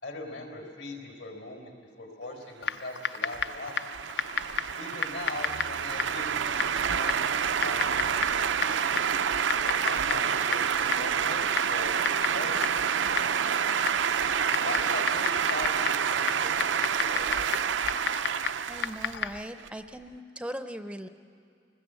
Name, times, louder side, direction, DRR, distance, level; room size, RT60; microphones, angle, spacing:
voice 1, 0.0-3.7 4.8-9.0 9.8-11.9 12.3-13.3 14.6-17.5, left 2 dB, 80° left, 2 dB, 4.5 m, -41 dB
Typing, 2.6-19.5, left 6 dB, 60° left, 0.6 m, -35 dB
sound 1, 3.0-19.7, right 7 dB, 85° right, 0.6 m, -28 dB
voice 2, 18.7-21.1, equal, 5° right, 8 dB, 0.5 m, -39 dB
29.0 x 20.0 x 8.2 m, 2.4 s
head